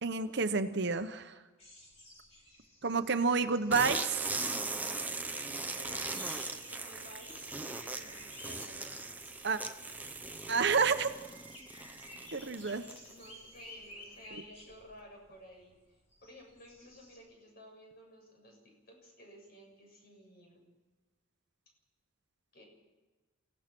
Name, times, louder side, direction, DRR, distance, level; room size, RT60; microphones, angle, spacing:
voice 1, 0.0-1.3 2.8-4.2 9.4-9.6 10.5-11.1 12.3-12.9, right 4 dB, 55° right, 9 dB, 1.0 m, -29 dB
sound 1, 1.6-17.2, left 1 dB, 30° left, 5.5 m, -54 dB
sound 2, 3.7-13.2, right 3 dB, 10° right, 0.9 m, -39 dB
voice 2, 5.0-9.1 13.1-20.7 22.5-22.6, equal, 50° left, 0 dB, 7.4 m, -55 dB
28.5 x 16.5 x 6.1 m, 1.2 s
head